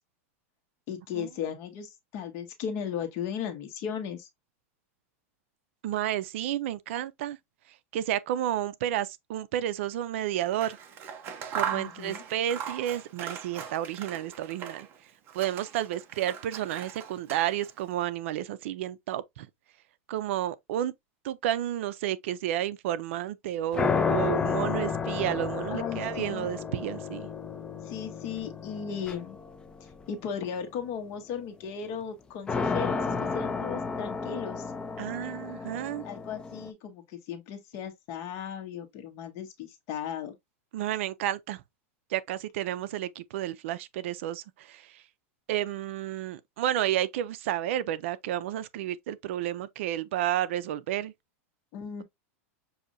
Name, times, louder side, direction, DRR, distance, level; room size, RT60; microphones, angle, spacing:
voice 1, 0.9-4.3 11.7-12.2 25.7-26.5 27.8-29.4 29.8-34.7 36.0-40.3 51.7-52.0, left 7 dB, 40° left, 1.1 m, -36 dB
voice 2, 5.8-7.4 7.9-10.8 11.5-14.9 15.3-19.5 20.1-20.9 21.2-27.3 35.0-36.1 40.7-41.6 42.1-45.0 45.5-51.1, right 12 dB, 65° right, 0.5 m, -31 dB
Scissors, 10.5-15.0 15.3-17.8, right 8 dB, 30° right, 0.8 m, -39 dB
sound 1, 23.7-30.0 32.5-36.7, left 5 dB, 10° left, 0.3 m, -32 dB
6.3 x 2.7 x 2.5 m
supercardioid pair, 155°, 7 cm